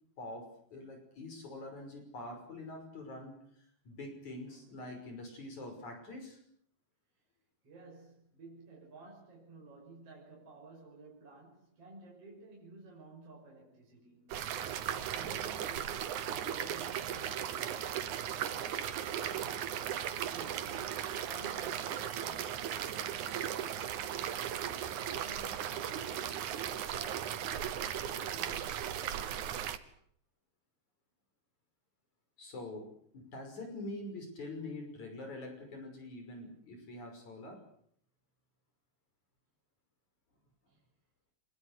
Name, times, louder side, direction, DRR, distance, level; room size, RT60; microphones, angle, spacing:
voice 1, 0.2-3.4 3.9-6.4 32.4-32.9 33.1-37.6, left 2 dB, 55° left, 7.2 m, -45 dB
voice 2, 7.6-14.4 14.9-26.5 26.9-29.1 40.7-40.8, right 3 dB, 45° right, 7.0 m, -53 dB
sound 1, 14.3-29.8, right 10 dB, 65° right, 2.7 m, -37 dB
25.5 x 22.5 x 8.2 m
omnidirectional pair, 3.9 m